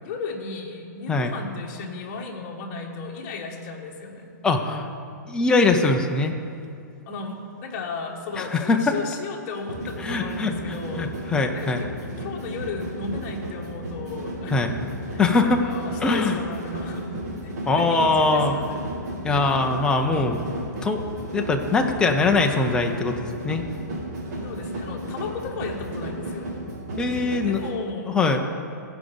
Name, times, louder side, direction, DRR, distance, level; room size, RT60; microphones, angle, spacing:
voice 1, 0.0-4.3 7.1-11.1 11.5-11.9 12.2-14.6 15.1-18.8 24.4-26.5 27.4-28.1, left 4 dB, 35° left, 1 dB, 1.5 m, -34 dB
voice 2, 4.4-4.9 5.3-6.3 8.4-8.9 10.0-11.8 14.5-14.7 15.2-15.6 16.0-16.4 17.7-18.6 19.2-20.4 20.8-21.0 21.3-23.6 27.0-27.6 28.1-28.4, left 3 dB, 10° left, 3 dB, 0.6 m, -22 dB
sound 1, 9.6-27.7, right 1 dB, 60° right, 2.7 m, -34 dB
15.0 x 5.2 x 7.0 m, 2.4 s
hypercardioid pair, 155°, 10 cm